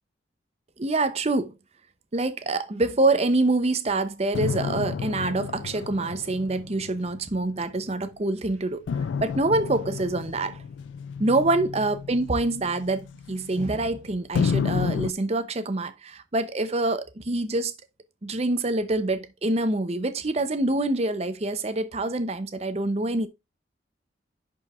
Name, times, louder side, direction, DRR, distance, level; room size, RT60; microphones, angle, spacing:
voice 1, 0.8-1.5 2.1-8.8 9.2-10.6 11.2-17.7 18.2-23.3, right 2 dB, 35° right, 0.7 m, -26 dB
sound 1, 4.3-8.0 8.9-13.9 14.3-15.1, left 6 dB, 85° left, 0.3 m, -31 dB
10.5 x 4.6 x 2.4 m
head